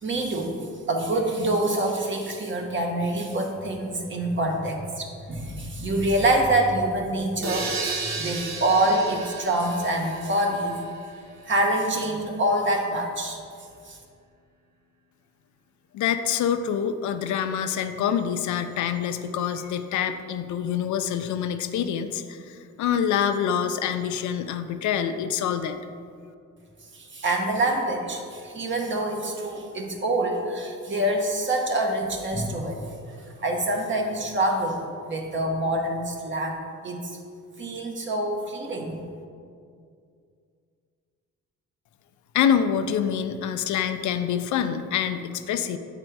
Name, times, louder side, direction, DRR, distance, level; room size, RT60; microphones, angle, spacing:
voice 1, 0.0-10.8 11.5-13.4 13.8-14.0 26.9-32.8 33.4-36.6 36.8-37.2 37.6-39.0, right 1 dB, 40° right, 1 dB, 1.2 m, -26 dB
sound 1, 7.4-11.2, right 3 dB, 65° right, 1.0 m, -33 dB
voice 2, 15.9-25.8 42.3-45.8, left 8 dB, 75° left, 9 dB, 0.5 m, -26 dB
7.6 x 4.3 x 4.6 m, 2.3 s
cardioid pair, 90°, 30 cm